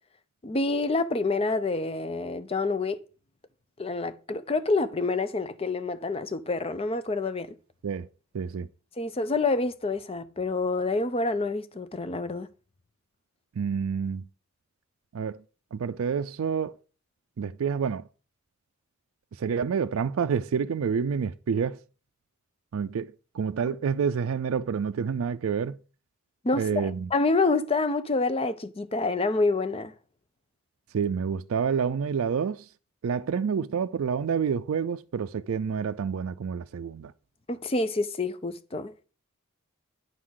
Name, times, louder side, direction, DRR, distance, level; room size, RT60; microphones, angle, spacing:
voice 1, 0.4-3.0 3.8-7.6 9.0-12.5 26.4-29.9 37.5-38.9, left 3 dB, 25° left, 0.5 m, -27 dB
voice 2, 8.3-8.7 13.6-14.3 15.1-15.4 15.7-16.8 17.4-18.0 19.3-21.8 22.7-25.8 26.5-27.1 30.9-32.7 33.0-37.1, right 6 dB, 70° right, 0.4 m, -28 dB
9.4 x 3.8 x 6.3 m
head